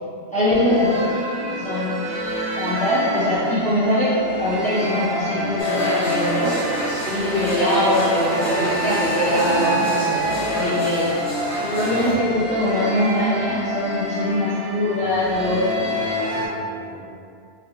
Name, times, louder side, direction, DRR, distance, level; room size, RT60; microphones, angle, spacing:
voice 1, 0.3-1.0 1.5-2.0 2.6-6.6 7.0-11.1 11.6-15.7, equal, 5° left, -11 dB, 1.0 m, -22 dB
sound 1, 0.5-16.5, left 1 dB, 75° right, 1.0 m, -27 dB
sound 2, 5.6-12.1, equal, 55° left, 1.1 m, -26 dB
voice 2, 11.9-12.4 15.0-17.1, equal, 40° left, -10 dB, 0.4 m, -37 dB
3.4 x 2.9 x 2.9 m, 2.4 s
omnidirectional pair, 1.1 m